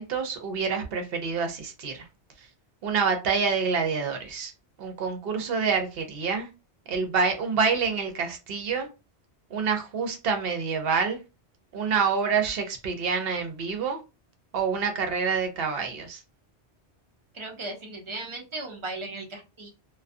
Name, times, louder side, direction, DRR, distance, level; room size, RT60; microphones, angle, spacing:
voice 1, 0.0-2.1 2.8-4.5 4.8-6.5 6.9-8.9 9.5-11.2 11.7-14.0 14.5-16.2, right 5 dB, 65° right, 5 dB, 0.8 m, -27 dB
voice 2, 17.3-19.7, right 2 dB, 40° right, 1 dB, 0.4 m, -37 dB
2.3 x 2.3 x 2.5 m, 0.28 s
omnidirectional pair, 1.1 m